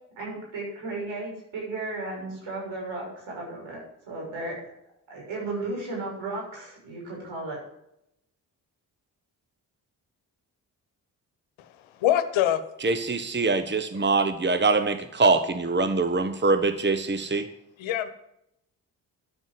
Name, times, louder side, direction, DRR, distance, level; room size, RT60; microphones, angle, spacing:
voice 1, 0.1-4.6 5.1-7.6 13.9-14.0, right 2 dB, 75° right, -2 dB, 6.6 m, -35 dB
voice 2, 12.0-12.6 17.8-18.1, left 11 dB, 80° left, 11 dB, 1.2 m, -23 dB
voice 3, 12.8-17.5, right 3 dB, 25° right, 9 dB, 1.2 m, -23 dB
12.0 x 7.5 x 7.8 m, 0.79 s
supercardioid pair, 40°, 46 cm